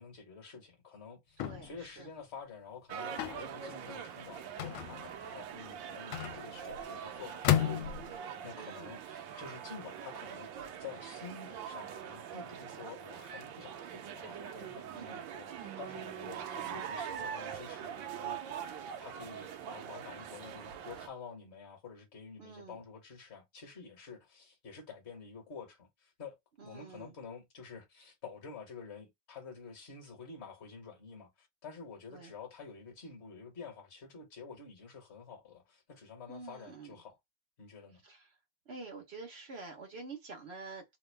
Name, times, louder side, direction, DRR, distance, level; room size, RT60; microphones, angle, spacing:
voice 1, 0.0-18.5 19.0-26.4 26.6-37.1 37.6-38.0, left 5 dB, 40° left, 1.2 m, -49 dB
sound 1, 1.4-1.8 3.2-3.5 4.6-5.2 6.1-6.8 7.4-8.2, left 11 dB, 80° left, 1.4 m, -32 dB
voice 2, 1.4-2.1 8.5-8.9 14.9-15.2 22.4-22.8 26.6-27.1 32.1-32.3 36.3-37.0 38.0-38.4 38.6-41.0, right 4 dB, 50° right, 0.7 m, -48 dB
sound 2, 2.9-21.1, right 8 dB, 70° right, 1.2 m, -43 dB
3.5 x 2.3 x 3.3 m
omnidirectional pair, 2.4 m